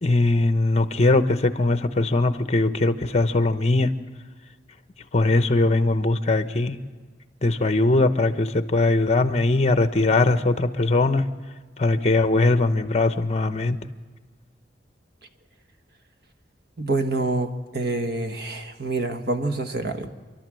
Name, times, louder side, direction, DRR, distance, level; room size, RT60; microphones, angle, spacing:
voice 1, 0.0-3.9 5.1-6.8 7.4-11.3 11.8-13.8, left 2 dB, 40° left, 10 dB, 0.9 m, -20 dB
voice 2, 16.8-20.1, right 2 dB, 60° right, 8 dB, 1.4 m, -26 dB
29.0 x 11.5 x 7.7 m, 1.4 s
head